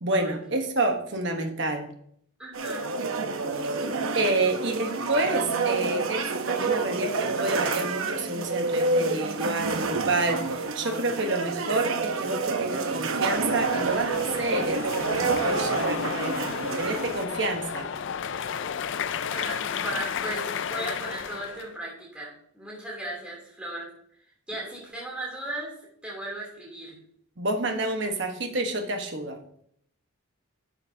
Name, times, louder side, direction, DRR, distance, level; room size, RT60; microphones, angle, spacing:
voice 1, 0.0-1.9 3.6-3.7 4.1-17.9 27.4-29.6, right 2 dB, 55° right, 4 dB, 1.1 m, -29 dB
voice 2, 2.4-2.9 4.4-4.5 9.4-9.5 19.2-23.9 24.5-25.7 26.0-27.0, right 1 dB, 5° right, -5 dB, 2.9 m, -36 dB
sound 1, 2.5-17.2, right 3 dB, 80° right, 0.8 m, -28 dB
sound 2, 13.3-21.7, left 7 dB, 60° left, 0.4 m, -33 dB
11.0 x 6.8 x 2.8 m, 0.67 s
head